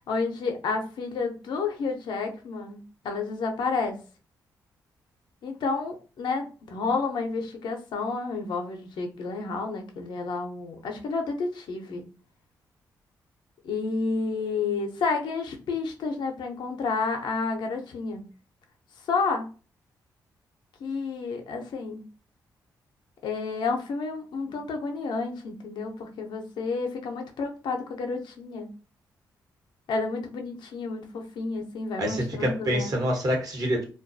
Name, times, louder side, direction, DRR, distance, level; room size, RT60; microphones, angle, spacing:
voice 1, 0.1-4.0 5.4-12.0 13.6-18.2 19.1-19.5 20.8-22.0 23.2-28.7 29.9-32.9, left 4 dB, 75° left, 0.5 m, -30 dB
voice 2, 32.0-33.8, equal, 50° right, 1.0 m, -26 dB
2.3 x 2.2 x 2.6 m
supercardioid pair, 55°, 8 cm